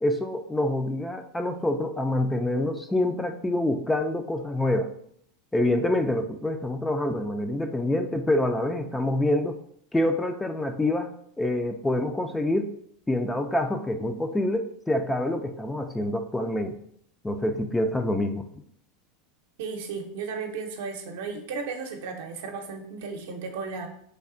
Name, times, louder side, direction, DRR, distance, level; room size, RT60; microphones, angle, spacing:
voice 1, 0.0-4.9 5.5-9.6 9.9-12.7 13.1-16.7 17.2-18.5, left 1 dB, 10° left, 6 dB, 0.4 m, -26 dB
voice 2, 19.6-23.9, right 5 dB, 70° right, 4 dB, 0.6 m, -34 dB
3.3 x 2.3 x 3.7 m, 0.67 s
hypercardioid pair, 95°, 0 cm